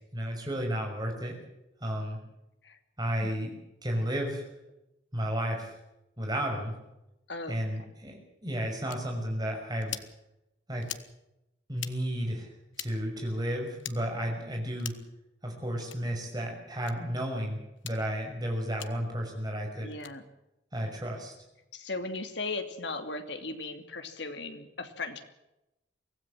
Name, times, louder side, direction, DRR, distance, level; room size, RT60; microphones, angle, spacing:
voice 1, 0.1-1.3 1.8-2.2 3.0-3.5 3.8-4.4 5.1-5.7 6.2-6.7 7.5-10.0 10.7-10.9 11.7-14.9 15.4-19.9 20.7-21.3, equal, 20° right, 1 dB, 6.1 m, -32 dB
sound 1, 8.9-9.0 9.8-10.1 10.8-11.1 11.7-11.9 12.7-12.9 13.8-14.0 14.8-15.1 15.8-16.0 16.8-17.0 17.8-18.0 18.8-18.9 19.9-20.1, left 11 dB, 85° left, 1.5 m, -40 dB
voice 2, 19.8-20.2 21.7-25.2, left 3 dB, 65° left, 7 dB, 2.7 m, -37 dB
24.5 x 16.5 x 7.6 m, 0.90 s
head